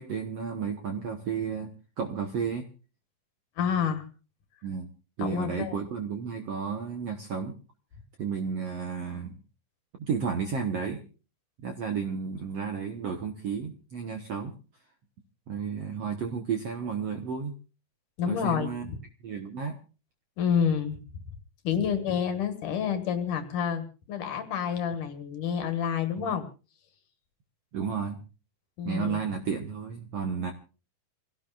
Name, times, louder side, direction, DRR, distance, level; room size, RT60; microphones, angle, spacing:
voice 1, 0.0-1.7 2.0-2.6 4.6-4.9 5.2-7.5 8.2-9.4 10.0-11.0 11.6-14.5 15.5-17.5 18.3-18.9 19.2-19.8 21.7-21.9 26.2-26.3 27.7-28.2 28.8-30.5, right 6 dB, 60° right, 4 dB, 1.7 m, -32 dB
voice 2, 3.6-4.1 5.2-5.8 18.2-19.0 20.4-21.2 21.6-26.4 28.8-29.4, left 7 dB, 60° left, 8 dB, 2.9 m, -29 dB
28.0 x 17.0 x 2.5 m, 0.34 s
omnidirectional pair, 4.4 m